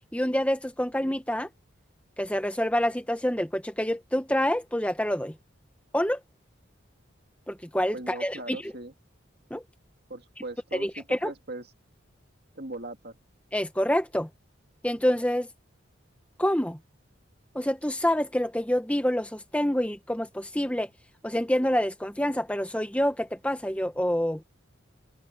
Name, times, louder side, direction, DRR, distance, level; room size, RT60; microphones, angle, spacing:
voice 1, 0.1-1.5 2.2-5.3 5.9-6.2 7.5-8.7 9.5-9.6 10.7-11.3 13.5-14.3 14.8-15.5 16.4-16.8 17.5-20.9 21.2-24.4, equal, 5° left, 1.3 m, -27 dB
voice 2, 7.9-8.9 10.1-11.7 12.6-13.1, right 2 dB, 50° right, 2.5 m, -39 dB
head